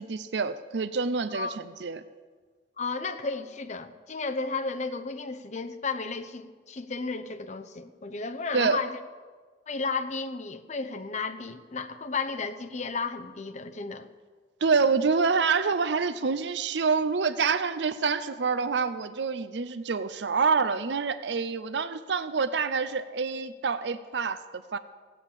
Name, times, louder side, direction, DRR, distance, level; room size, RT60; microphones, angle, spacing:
voice 1, 0.0-2.0 8.5-8.8 14.6-24.8, right 5 dB, 75° right, 0.6 m, -27 dB
voice 2, 2.8-9.0 9.7-14.1, left 4 dB, 40° left, 0.8 m, -33 dB
16.5 x 8.6 x 7.3 m
head